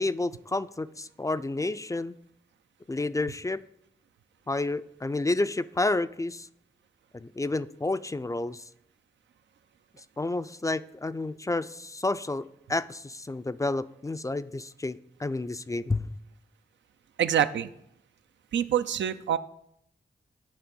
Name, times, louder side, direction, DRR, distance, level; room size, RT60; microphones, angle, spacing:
voice 1, 0.0-2.2 2.9-3.6 4.5-6.5 7.1-8.6 10.2-16.1, left 2 dB, 15° left, 15 dB, 0.3 m, -30 dB
voice 2, 17.2-17.7 18.5-19.4, right 9 dB, 80° right, 11 dB, 0.4 m, -25 dB
9.6 x 3.4 x 5.3 m, 0.73 s
cardioid pair, 40°, 19 cm